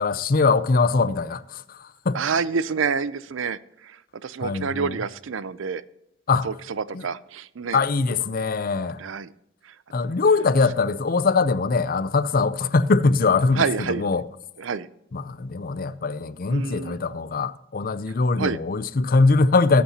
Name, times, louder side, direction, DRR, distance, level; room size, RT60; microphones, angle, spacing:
voice 1, 0.0-2.2 4.4-4.9 6.3-6.5 6.9-7.1 7.7-9.0 9.9-14.2 15.1-19.8, left 4 dB, 40° left, 0.5 m, -22 dB
voice 2, 2.1-5.8 6.4-7.8 9.0-9.3 9.6-9.8 13.6-14.0 14.6-14.9 16.5-17.0 18.4-18.6, right 5 dB, 60° right, 0.5 m, -28 dB
18.5 x 8.3 x 2.8 m
head